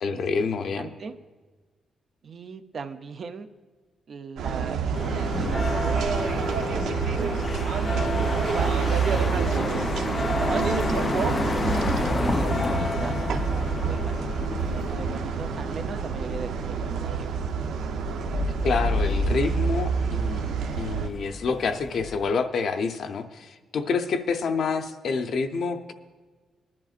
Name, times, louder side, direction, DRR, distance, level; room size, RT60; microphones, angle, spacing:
voice 1, 0.0-0.9 18.6-25.9, left 5 dB, 55° left, 6 dB, 0.7 m, -28 dB
voice 2, 0.7-1.2 2.2-3.5 4.1-7.5 8.1-12.5 12.8-14.2 14.8-17.3, right 5 dB, 40° right, 8 dB, 0.5 m, -40 dB
sound 1, 4.4-21.1, right 7 dB, 85° right, 0.7 m, -28 dB
sound 2, 4.9-22.3, left 3 dB, 20° left, 0.3 m, -30 dB
20.5 x 10.5 x 2.5 m, 1.4 s
cardioid pair, 155°, 0 cm